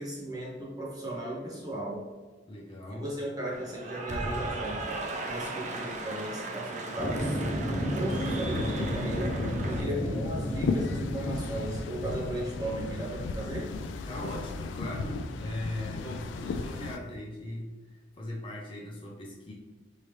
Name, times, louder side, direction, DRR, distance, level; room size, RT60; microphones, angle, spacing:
voice 1, 0.0-2.1 2.9-7.4 7.9-13.7, right 1 dB, 20° right, -4 dB, 1.1 m, -36 dB
voice 2, 2.5-3.1 5.4-5.8 9.7-10.2 14.1-19.5, left 1 dB, 30° left, -3 dB, 0.5 m, -40 dB
Cheering / Applause, 3.5-9.8, right 2 dB, 40° right, 0.5 m, -37 dB
sound 1, 7.0-14.6, equal, 5° right, 0.8 m, -34 dB
sound 2, 8.1-17.0, left 4 dB, 85° left, 0.3 m, -35 dB
4.7 x 2.8 x 3.2 m, 1.3 s
head